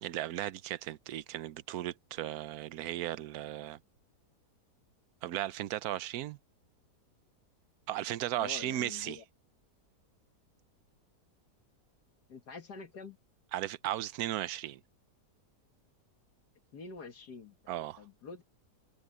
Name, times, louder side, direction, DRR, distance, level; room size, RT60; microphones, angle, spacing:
voice 1, 0.0-3.8 5.2-6.4 7.9-9.2 13.5-14.8 17.7-18.0, right 13 dB, 70° right, 1.1 m, -36 dB
voice 2, 8.4-9.2 12.3-13.2 16.7-17.6 18.0-18.4, left 4 dB, 75° left, 2.3 m, -46 dB
omnidirectional pair, 1.7 m